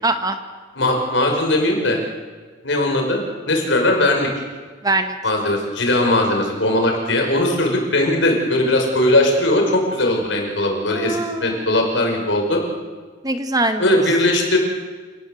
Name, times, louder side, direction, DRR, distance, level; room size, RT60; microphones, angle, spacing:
voice 1, 0.0-0.4 4.8-5.1 10.9-11.7 13.2-13.9, right 2 dB, 20° right, 7 dB, 1.5 m, -22 dB
voice 2, 0.8-2.0 2.6-4.3 5.2-12.6 13.8-14.6, left 1 dB, 75° left, 2 dB, 5.7 m, -19 dB
28.5 x 18.5 x 7.9 m, 1.4 s
head